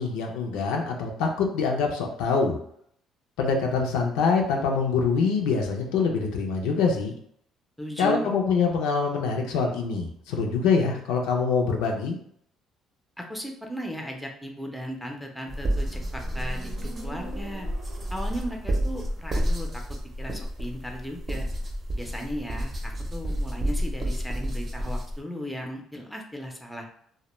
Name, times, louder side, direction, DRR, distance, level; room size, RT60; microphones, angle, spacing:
voice 1, 0.0-2.6 3.4-7.1 8.0-12.2, left 5 dB, 90° left, 2 dB, 0.4 m, -25 dB
voice 2, 7.8-8.4 13.2-17.7 18.1-19.8 20.2-21.5 22.0-26.9, equal, ahead, 1 dB, 0.5 m, -36 dB
Motorcycle, 15.4-18.6, right 2 dB, 75° right, 0.7 m, -45 dB
sound 1, 15.5-25.2, equal, 35° right, 0.6 m, -30 dB
2.1 x 2.1 x 3.0 m, 0.65 s
cardioid pair, 90°, 0 cm